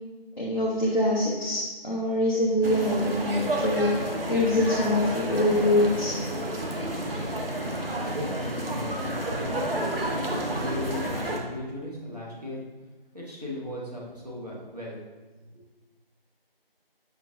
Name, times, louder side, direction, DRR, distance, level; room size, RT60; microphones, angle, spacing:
voice 1, 0.4-3.9 4.3-6.2, left 1 dB, 50° left, -6 dB, 0.7 m, -24 dB
sound 1, 2.6-11.4, right 1 dB, 70° right, 0.7 m, -30 dB
voice 2, 8.0-9.6 10.0-12.6 13.1-15.0 15.5-15.6, left 1 dB, 40° right, -4 dB, 1.0 m, -37 dB
5.7 x 2.8 x 2.5 m, 1.2 s
figure-of-eight pair, 170°, 29 cm